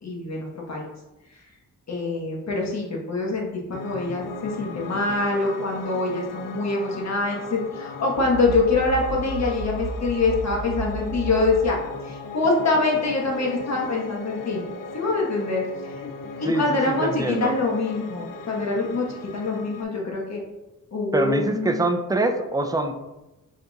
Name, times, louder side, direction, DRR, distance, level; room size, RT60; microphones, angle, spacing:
voice 1, 0.0-0.9 1.9-11.8 12.0-14.6 14.9-15.7 16.0-16.1 16.4-19.1 19.3-20.4 20.9-21.8, left 3 dB, 50° left, -1 dB, 1.2 m, -25 dB
Piano, 3.7-19.8, left 4 dB, 70° left, 0.5 m, -37 dB
sound 1, 8.2-11.7, right 3 dB, 70° right, 0.5 m, -33 dB
voice 2, 16.4-17.5 21.1-22.9, right 2 dB, 10° right, 5 dB, 0.4 m, -24 dB
5.1 x 4.1 x 2.3 m, 1.0 s
cardioid pair, 95°, 35 cm